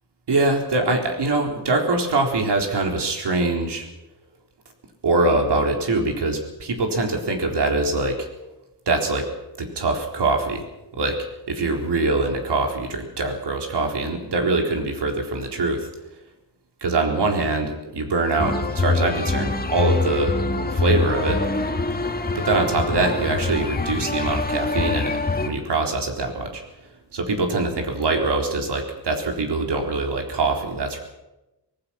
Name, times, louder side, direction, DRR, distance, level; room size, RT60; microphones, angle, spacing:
voice 1, 0.3-3.9 5.0-8.3 8.9-9.3 9.6-10.7 10.9-11.2 11.5-15.9 16.8-20.4 20.7-21.4 22.3-25.2 25.4-26.6 27.1-31.0, right 3 dB, 70° right, 3 dB, 4.1 m, -23 dB
sound 1, 18.4-25.5, left 3 dB, 20° left, 1.6 m, -24 dB
25.0 x 18.5 x 5.9 m, 0.98 s
wide cardioid pair, 145°, 42 cm